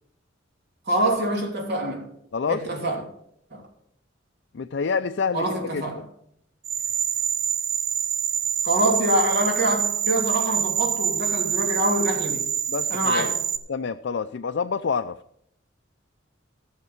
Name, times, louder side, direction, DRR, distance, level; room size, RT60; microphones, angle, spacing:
voice 1, 0.9-2.1 2.5-3.0 3.5-3.6 5.3-6.0 8.6-12.5 12.9-13.4, right 1 dB, 60° right, 3.1 m, -25 dB
voice 2, 2.3-2.7 4.5-6.0 12.7-13.3 13.7-15.2, left 5 dB, 65° left, 0.5 m, -28 dB
sound 1, 6.6-13.6, right 8 dB, 85° right, 1.0 m, -26 dB
15.0 x 6.6 x 6.0 m
head